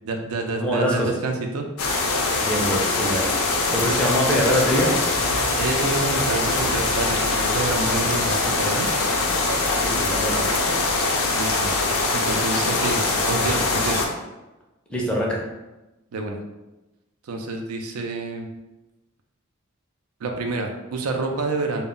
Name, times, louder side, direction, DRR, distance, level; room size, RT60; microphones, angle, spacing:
voice 1, 0.0-1.7 5.6-8.9 11.3-11.7 12.1-14.0 16.1-16.4 17.2-18.5 20.2-21.8, right 3 dB, 85° right, 3 dB, 0.4 m, -28 dB
voice 2, 0.6-1.1 2.4-3.3 3.7-5.0 9.8-10.6 14.9-15.4, equal, 5° left, -3 dB, 0.4 m, -23 dB
sound 1, 1.8-14.1, left 3 dB, 75° left, 0.4 m, -23 dB
2.1 x 2.0 x 3.7 m, 1.0 s
head